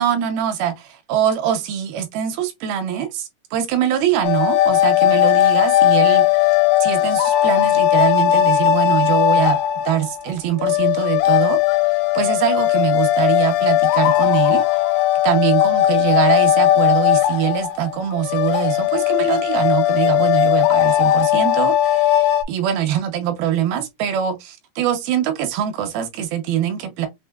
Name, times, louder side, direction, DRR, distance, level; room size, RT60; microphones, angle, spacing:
voice 1, 0.0-6.6 6.8-9.6 9.9-14.9 15.2-27.1, right 10 dB, 75° right, 2.5 m, -23 dB
sound 1, 4.2-22.4, left 12 dB, 85° left, 2.1 m, -17 dB
6.0 x 2.7 x 2.2 m
omnidirectional pair, 4.6 m